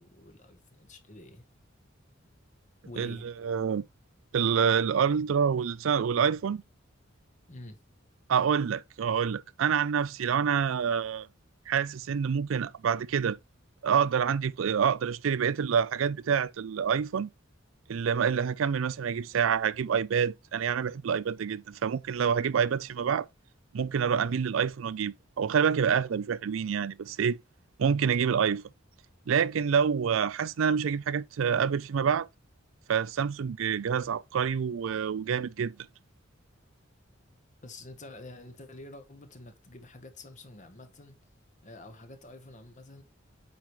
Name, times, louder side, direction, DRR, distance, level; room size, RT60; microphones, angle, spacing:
voice 1, 0.0-1.4 2.8-3.3 7.5-7.8 37.6-41.1 41.6-43.0, left 2 dB, 40° left, 1.2 m, -48 dB
voice 2, 3.0-3.8 4.3-6.6 8.3-11.3 11.7-13.4 13.8-17.3 17.9-23.3 23.7-27.4 27.8-28.6 29.3-32.3 32.9-35.7, right 7 dB, 85° right, 0.4 m, -27 dB
8.5 x 4.7 x 3.1 m
head